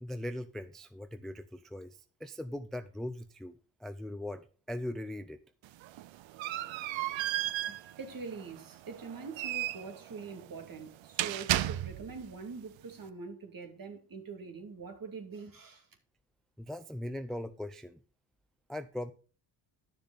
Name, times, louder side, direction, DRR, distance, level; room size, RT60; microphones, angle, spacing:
voice 1, 0.0-5.4 16.6-18.0 18.7-19.1, left 1 dB, ahead, 0.5 m, -40 dB
sound 1, 5.6-12.3, right 14 dB, 70° right, 0.7 m, -35 dB
voice 2, 7.0-15.9, right 4 dB, 45° right, 2.2 m, -44 dB
10.0 x 6.6 x 4.0 m
supercardioid pair, 70°, 48 cm